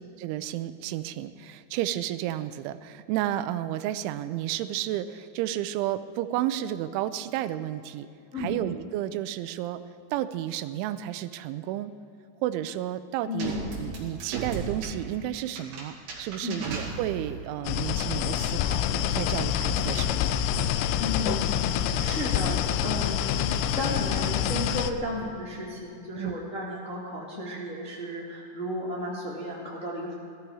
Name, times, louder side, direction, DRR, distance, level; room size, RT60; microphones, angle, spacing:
voice 1, 0.2-8.1 8.4-9.8 10.1-11.9 12.4-20.4 26.2-26.4, right 12 dB, 90° right, 12 dB, 3.0 m, -32 dB
voice 2, 13.3-13.6 16.4-16.6 21.0-23.4 23.7-30.1, left 1 dB, 35° left, -6 dB, 1.2 m, -33 dB
sound 1, 13.4-17.5, right 4 dB, 55° right, 3.8 m, -36 dB
sound 2, 17.6-24.9, left 9 dB, 90° left, 3.0 m, -27 dB
17.5 x 13.0 x 4.9 m, 2.7 s
omnidirectional pair, 5.4 m